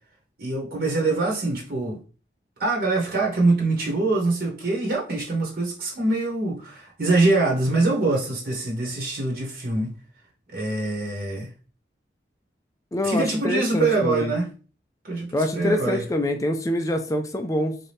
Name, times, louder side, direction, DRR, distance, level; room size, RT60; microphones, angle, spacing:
voice 1, 0.4-2.0 2.6-9.9 10.5-11.5 13.0-14.5 15.0-16.0, right 2 dB, 60° right, -2 dB, 1.1 m, -24 dB
voice 2, 12.9-14.3 15.3-17.8, left 1 dB, 20° left, 6 dB, 0.4 m, -25 dB
4.0 x 2.8 x 3.4 m, 0.37 s
head